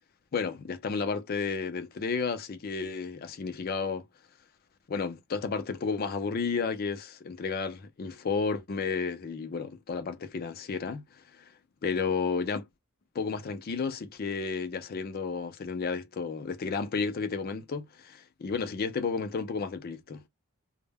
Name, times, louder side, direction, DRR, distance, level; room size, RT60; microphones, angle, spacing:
voice 1, 0.3-4.0 4.9-11.1 11.3-11.5 11.8-12.7 13.1-20.2, left 5 dB, 40° left, 0.4 m, -32 dB
2.1 x 2.0 x 3.3 m
head